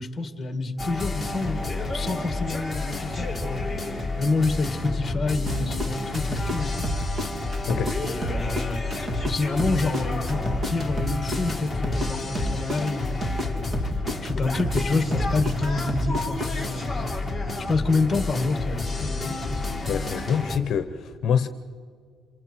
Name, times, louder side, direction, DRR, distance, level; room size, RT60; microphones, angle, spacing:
voice 1, 0.0-1.6 1.9-3.7 4.2-6.8 7.9-13.7 14.2-19.6, left 3 dB, 20° left, 1.9 m, -28 dB
sound 1, 0.8-20.6, left 2 dB, ahead, 3.2 m, -30 dB
sound 2, 5.5-8.0 8.2-12.1 12.3-16.5, equal, 35° right, 2.0 m, -30 dB
voice 2, 19.9-21.5, left 7 dB, 55° left, 0.9 m, -25 dB
28.0 x 27.0 x 4.6 m
cardioid pair, 135°, 0 cm